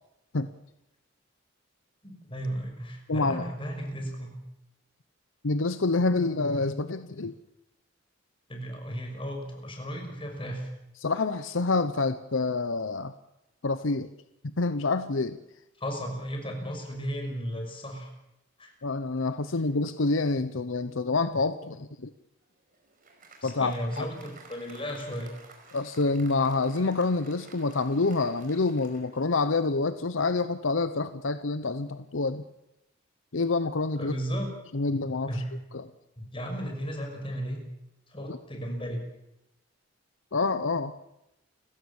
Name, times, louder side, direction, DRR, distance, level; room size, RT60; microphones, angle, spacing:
voice 1, 2.0-4.4 8.5-10.7 15.8-18.1 18.6-18.7 23.4-25.3 34.0-34.5 35.3-35.5 36.2-37.6 38.1-39.0, equal, 25° left, 3 dB, 6.0 m, -34 dB
voice 2, 3.1-3.5 5.4-7.3 11.0-13.1 13.6-14.1 14.6-15.4 18.8-22.1 23.4-24.1 25.7-32.4 33.3-34.2 34.7-35.3 35.7-35.9 38.3-38.4 40.3-40.9, left 3 dB, 75° left, 12 dB, 0.9 m, -27 dB
Applause, 22.4-30.0, right 3 dB, 45° right, 5.1 m, -54 dB
29.5 x 16.0 x 7.2 m, 0.87 s
head